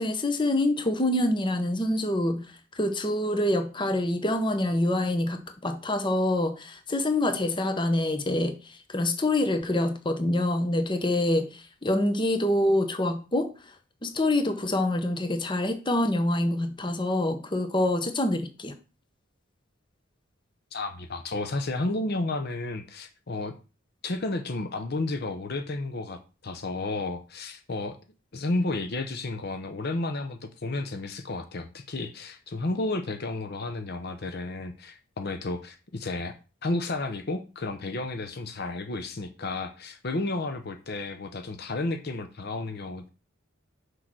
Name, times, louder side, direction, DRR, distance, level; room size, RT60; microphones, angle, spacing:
voice 1, 0.0-2.4 2.8-8.5 8.9-13.5 14.0-18.7, left 1 dB, 20° left, 0.9 m, -26 dB
voice 2, 20.7-23.5 24.0-28.0 28.3-36.4 36.6-43.1, left 2 dB, 50° left, 0.7 m, -32 dB
6.4 x 4.7 x 6.1 m
head